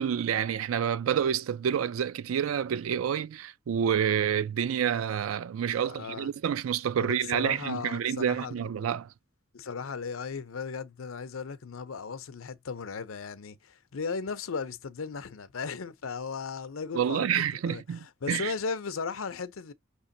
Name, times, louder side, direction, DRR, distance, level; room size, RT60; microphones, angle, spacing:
voice 1, 0.0-9.1 16.9-18.5, right 8 dB, 85° right, 0.3 m, -28 dB
voice 2, 5.9-6.3 7.0-8.7 9.5-19.7, left 5 dB, 85° left, 0.6 m, -36 dB
5.8 x 3.1 x 2.7 m
head